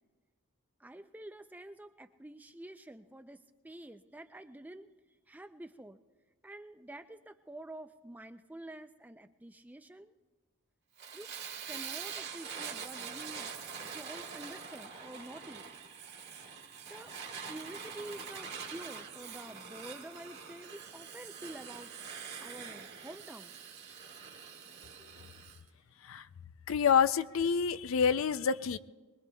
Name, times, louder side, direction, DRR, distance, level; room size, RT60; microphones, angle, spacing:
voice 1, 0.8-4.9 5.3-6.0 6.4-10.1 11.1-11.3 11.7-13.5 13.8-15.6 16.9-17.1 17.4-21.9 22.4-25.2, right 1 dB, 5° right, 8 dB, 0.4 m, -48 dB
Fire, 11.0-25.6, right 6 dB, 50° right, 1.6 m, -44 dB
voice 2, 26.7-28.8, left 7 dB, 65° left, 14 dB, 0.4 m, -27 dB
24.0 x 21.0 x 2.3 m, 1.3 s
head